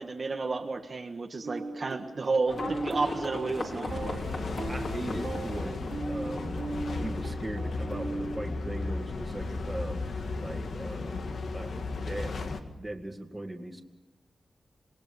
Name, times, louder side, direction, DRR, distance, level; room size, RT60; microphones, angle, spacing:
voice 1, 0.0-4.2, right 3 dB, 45° right, 3 dB, 1.5 m, -32 dB
sound 1, 1.4-8.9, right 3 dB, 65° right, 3.5 m, -38 dB
Livestock farm animals working animals, 2.5-8.5, left 2 dB, 55° left, 4.4 m, -40 dB
sound 2, 3.9-12.6, left 3 dB, 70° left, 1.9 m, -35 dB
voice 2, 4.7-6.7 7.0-10.0 10.4-13.8, right 1 dB, 15° right, 5 dB, 2.1 m, -39 dB
26.5 x 20.0 x 7.1 m, 1.1 s
wide cardioid pair, 100°, 0 cm